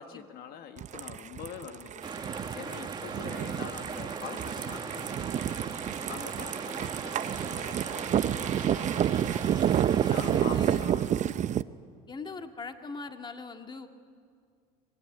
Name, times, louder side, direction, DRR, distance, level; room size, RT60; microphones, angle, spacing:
voice 1, 0.0-2.3 2.5-5.4 6.1-9.1 10.0-11.1, left 7 dB, 55° left, 7 dB, 1.5 m, -45 dB
sound 1, 0.8-11.6, right 10 dB, 40° right, 0.8 m, -30 dB
sound 2, 2.0-11.1, right 5 dB, 25° right, 1.9 m, -39 dB
voice 2, 3.3-3.6 10.2-10.9 12.1-13.9, left 4 dB, 25° left, 5 dB, 2.1 m, -41 dB
25.5 x 21.5 x 9.2 m, 2.1 s
supercardioid pair, 95°, 18 cm